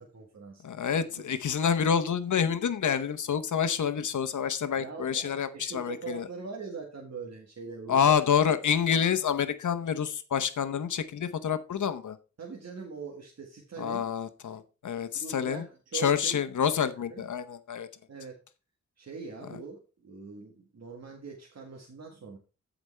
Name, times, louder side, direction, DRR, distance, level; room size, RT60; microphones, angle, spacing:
voice 1, 0.0-0.6 0.9-1.3 4.8-8.2 12.4-14.1 15.1-16.4 17.1-17.3 18.1-18.4 19.0-22.4, right 5 dB, 60° right, -1 dB, 1.8 m, -42 dB
voice 2, 0.6-6.3 7.9-12.2 13.8-15.6 15.9-17.9, left 7 dB, 85° left, 11 dB, 0.9 m, -28 dB
14.5 x 5.1 x 3.3 m, 0.32 s
wide cardioid pair, 130°, 29 cm